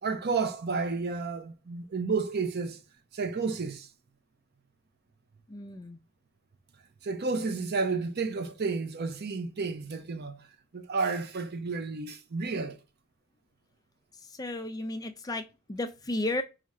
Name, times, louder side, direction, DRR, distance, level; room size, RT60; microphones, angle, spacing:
voice 1, 0.0-2.8 3.1-3.9 7.0-10.5 10.7-12.8, right 4 dB, 50° right, 0.6 m, -31 dB
voice 2, 5.5-6.0 14.3-16.4, left 2 dB, 15° left, 0.4 m, -34 dB
4.9 x 2.4 x 4.2 m
head